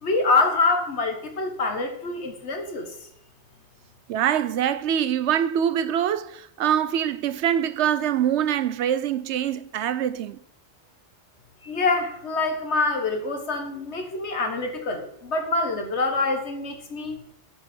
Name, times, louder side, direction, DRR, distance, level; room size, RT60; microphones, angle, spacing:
voice 1, 0.0-2.9 11.6-17.2, left 3 dB, 70° left, 1.6 m, -25 dB
voice 2, 4.1-10.4, right 9 dB, 80° right, 0.9 m, -24 dB
7.2 x 5.4 x 6.0 m
omnidirectional pair, 1.2 m